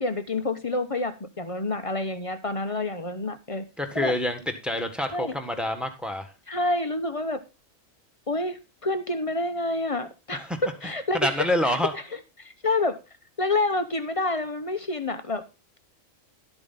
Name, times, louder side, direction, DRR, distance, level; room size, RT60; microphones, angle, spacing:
voice 1, 0.0-3.6 3.9-4.1 5.1-5.3 6.5-7.4 8.3-12.0 12.4-13.0 13.4-15.4, left 2 dB, 30° left, 10 dB, 0.8 m, -28 dB
voice 2, 3.8-6.3 10.4-10.6 11.1-11.9, left 1 dB, ahead, 7 dB, 1.5 m, -27 dB
12.0 x 8.5 x 4.0 m, 0.27 s
omnidirectional pair, 1.4 m